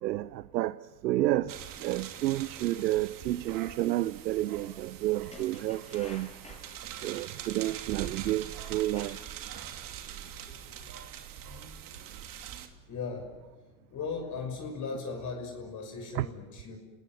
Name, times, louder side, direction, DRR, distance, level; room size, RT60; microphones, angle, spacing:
voice 1, 0.0-6.3 7.0-9.2 16.1-16.3, right 15 dB, 85° right, 0.8 m, -30 dB
sound 1, 1.5-12.7, right 9 dB, 40° right, 2.7 m, -43 dB
sound 2, 5.2-6.7 7.8-8.0 8.7-9.4 9.8-9.9, left 3 dB, 15° left, 6.2 m, -50 dB
voice 2, 9.9-10.9 12.9-13.3 13.9-16.8, left 4 dB, 35° left, 6.4 m, -38 dB
29.5 x 19.0 x 9.5 m
hypercardioid pair, 100°, 49 cm